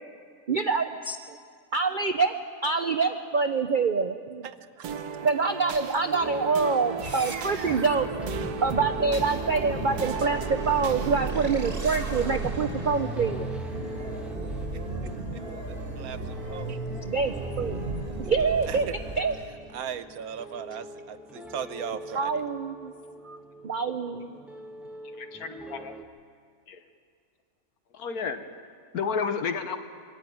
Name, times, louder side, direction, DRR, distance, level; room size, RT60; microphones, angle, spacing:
voice 1, 0.5-1.2 1.7-2.4 2.6-4.5 5.2-8.1 8.6-13.5 17.0-17.9 18.3-18.9 19.2-19.4 22.1-22.9 23.2-23.4 23.6-24.4, right 4 dB, 55° right, 7 dB, 0.5 m, -26 dB
voice 2, 4.4-4.8 15.6-16.8 18.7-19.2 19.7-22.4, right 8 dB, 70° right, 11 dB, 1.2 m, -38 dB
sound 1, 4.8-11.7, right 6 dB, 90° right, 1.4 m, -36 dB
sound 2, 6.2-26.0, equal, ahead, 0.6 m, -42 dB
sound 3, 7.0-19.6, right 3 dB, 35° right, 1.7 m, -35 dB
voice 3, 25.1-25.9 26.7-26.8 27.9-28.4 28.9-29.8, left 6 dB, 70° left, 8 dB, 1.5 m, -31 dB
23.0 x 13.0 x 9.1 m, 2.1 s
omnidirectional pair, 1.7 m